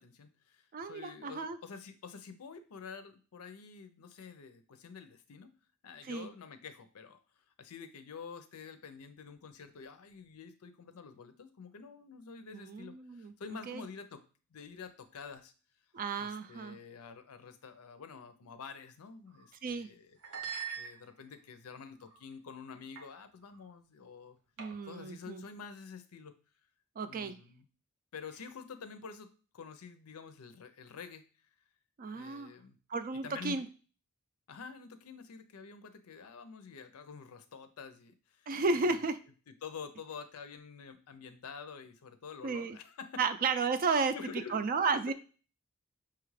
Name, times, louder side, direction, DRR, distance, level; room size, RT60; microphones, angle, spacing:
voice 1, 0.0-5.5 5.8-7.2 7.6-14.2 14.5-15.5 16.2-20.2 20.7-24.4 24.8-26.4 27.0-27.6 28.1-31.2 32.1-32.8 33.2-33.7 34.5-38.5 38.8-39.0 39.5-43.2 43.8-44.7, left 5 dB, 80° left, 9 dB, 0.5 m, -48 dB
voice 2, 0.7-1.6 6.1-6.3 12.5-13.3 13.7-13.8 15.9-16.8 19.6-19.9 24.6-25.4 27.0-27.4 32.0-32.5 32.9-33.7 38.5-39.2 42.4-42.8 43.2-44.1 44.5-45.1, right 4 dB, 40° right, 10 dB, 0.4 m, -33 dB
sound 1, 19.3-19.5 20.2-21.4 22.0-22.3 23.0-23.1 23.4-23.6 24.6-25.0, right 7 dB, 85° right, 0.9 m, -43 dB
5.7 x 2.4 x 3.1 m, 0.36 s
head